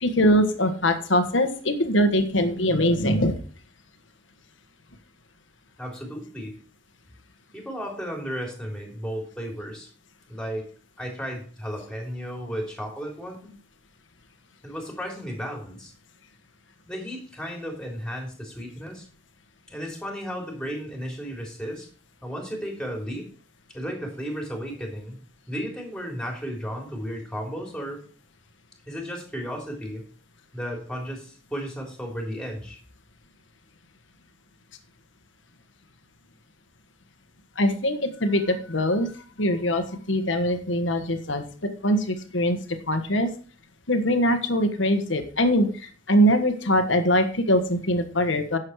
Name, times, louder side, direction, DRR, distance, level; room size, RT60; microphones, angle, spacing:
voice 1, 0.0-3.4 37.6-39.1 39.4-42.6 42.9-43.3 43.9-48.6, equal, 70° left, 8 dB, 1.5 m, -22 dB
voice 2, 5.8-6.5 7.5-9.9 10.3-10.7 11.0-13.5 14.6-15.9 16.9-19.1 19.7-21.9 22.2-23.3 23.7-25.2 25.5-28.0 28.9-30.0 30.5-32.8, equal, 5° left, 1 dB, 3.4 m, -34 dB
11.0 x 7.5 x 4.8 m, 0.41 s
head